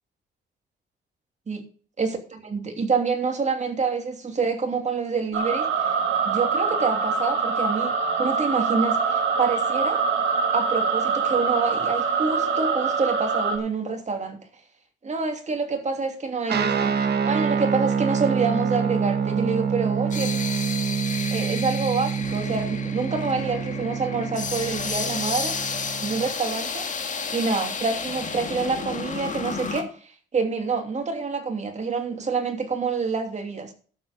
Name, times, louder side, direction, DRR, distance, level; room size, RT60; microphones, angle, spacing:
voice 1, 2.0-5.9 6.2-7.9 8.2-10.0 10.5-14.4 15.0-20.3 21.3-25.6 26.0-26.9 27.3-33.7, right 4 dB, 35° right, 5 dB, 2.8 m, -27 dB
sound 1, 5.3-13.6, right 5 dB, 75° right, 2.5 m, -24 dB
Guitar, 16.5-26.3, right 6 dB, 55° right, 1.6 m, -26 dB
sound 2, 19.2-29.8, left 5 dB, 40° left, 1.9 m, -32 dB
12.0 x 7.6 x 5.3 m, 0.42 s
cardioid pair, 90°, 20 cm